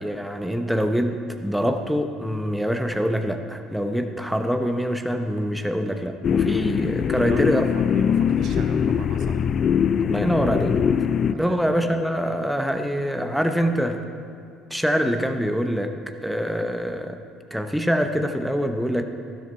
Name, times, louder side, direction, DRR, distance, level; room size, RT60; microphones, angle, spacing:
voice 1, 0.0-7.6 10.0-10.8 11.3-14.0 14.7-15.9 16.2-17.2 17.5-19.0, equal, ahead, 6 dB, 0.9 m, -24 dB
sound 1, 6.2-11.3, left 7 dB, 45° left, 0.4 m, -22 dB
voice 2, 7.2-9.5 11.3-11.6, right 6 dB, 60° right, 5 dB, 1.1 m, -38 dB
12.5 x 11.5 x 4.4 m, 2.4 s
hypercardioid pair, 60°, 0 cm